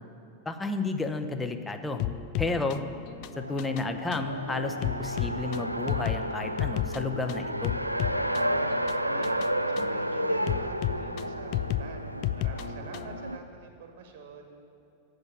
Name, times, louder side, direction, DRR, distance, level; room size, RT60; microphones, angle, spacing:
voice 1, 0.5-2.0 2.4-2.8 3.4-7.7, left 3 dB, 10° left, 6 dB, 0.7 m, -31 dB
sound 1, 2.0-13.2, left 12 dB, 45° left, 0.3 m, -34 dB
Race car auto racing, 3.3-13.4, right 1 dB, 85° right, 0.3 m, -32 dB
voice 2, 8.3-9.4 9.7-12.1 12.3-14.6, right 3 dB, 55° right, 5 dB, 1.3 m, -46 dB
8.0 x 7.2 x 8.4 m, 2.9 s
figure-of-eight pair, 90°, 0 cm